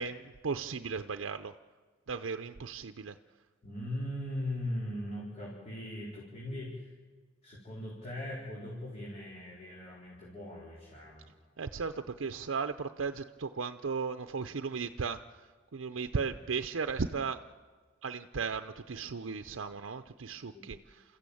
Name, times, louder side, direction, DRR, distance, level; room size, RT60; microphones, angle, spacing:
voice 1, 0.0-1.5 2.1-3.2 11.6-15.2 15.7-17.4 18.0-21.0, right 5 dB, 90° right, 8 dB, 0.6 m, -36 dB
voice 2, 3.6-6.9 7.4-11.3 20.5-20.7, left 1 dB, 35° left, -5 dB, 4.4 m, -39 dB
29.0 x 14.5 x 8.6 m, 1.4 s
head